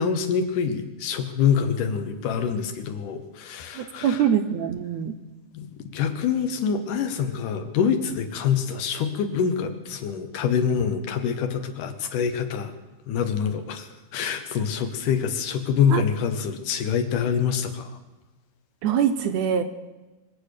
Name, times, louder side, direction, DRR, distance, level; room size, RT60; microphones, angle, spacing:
voice 1, 0.0-4.2 5.5-12.7 13.1-17.9, left 7 dB, 90° left, 7 dB, 2.8 m, -25 dB
voice 2, 3.8-5.2 15.9-16.0 18.8-19.6, right 8 dB, 75° right, 7 dB, 1.8 m, -23 dB
23.5 x 8.3 x 6.6 m, 1.1 s
omnidirectional pair, 3.6 m